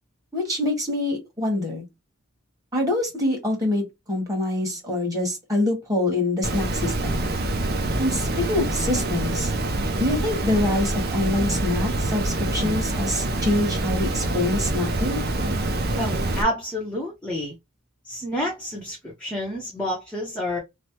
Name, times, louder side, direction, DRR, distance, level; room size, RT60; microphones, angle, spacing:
voice 1, 0.3-1.8 2.7-7.2 8.0-9.5 10.0-15.2, left 2 dB, 15° right, 1.4 m, -25 dB
Water, 6.4-16.4, right 2 dB, 50° right, 0.6 m, -26 dB
voice 2, 16.0-17.6 18.0-20.6, equal, 5° left, 0.7 m, -29 dB
3.3 x 2.1 x 2.7 m
head